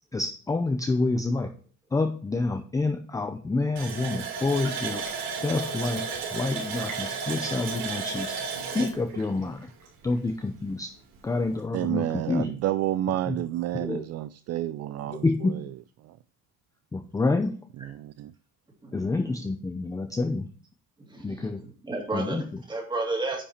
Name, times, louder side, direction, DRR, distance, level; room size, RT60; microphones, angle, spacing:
voice 1, 0.1-1.5 1.9-5.0 5.4-6.0 6.3-8.3 8.7-9.6 10.0-10.9 11.2-12.5 13.3-13.4 13.7-14.0 15.1-15.6 16.9-17.5 18.9-20.5 21.2-21.6 22.1-22.5, left 3 dB, 10° left, 0.5 m, -28 dB
Water tap faucet, 3.8-10.3 10.6-10.7 11.1-11.3, right 5 dB, 65° right, 3.5 m, -33 dB
voice 2, 11.7-15.2 18.0-18.3, right 13 dB, 45° right, 0.4 m, -29 dB
voice 3, 21.1-21.5 21.8-23.4, right 2 dB, 15° right, 2.3 m, -31 dB
9.9 x 5.6 x 4.3 m
cardioid pair, 170°, 36 cm